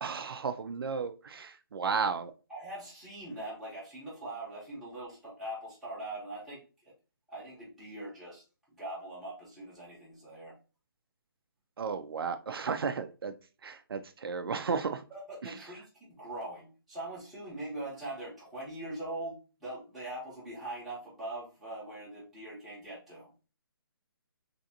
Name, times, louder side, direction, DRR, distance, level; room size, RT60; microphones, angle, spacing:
voice 1, 0.0-2.3 11.8-13.3 13.6-15.0 15.4-15.6, right 5 dB, 70° right, 8 dB, 0.4 m, -34 dB
voice 2, 2.5-6.9 7.3-8.4 8.7-10.5 15.1-23.3, right 1 dB, ahead, -11 dB, 0.7 m, -42 dB
3.3 x 2.6 x 2.6 m, 0.33 s
hypercardioid pair, 175°, 13 cm